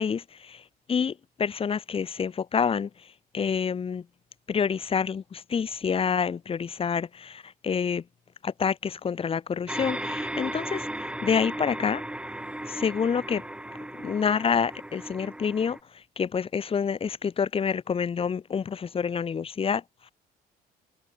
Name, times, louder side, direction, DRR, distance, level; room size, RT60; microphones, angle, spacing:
voice 1, 0.0-4.1 4.5-8.0 8.4-12.0 12.6-13.4 14.0-20.1, left 6 dB, 35° left, 1.7 m, -28 dB
sound 1, 9.7-15.8, right 1 dB, 5° right, 2.4 m, -36 dB
cardioid pair, 110°, 17 cm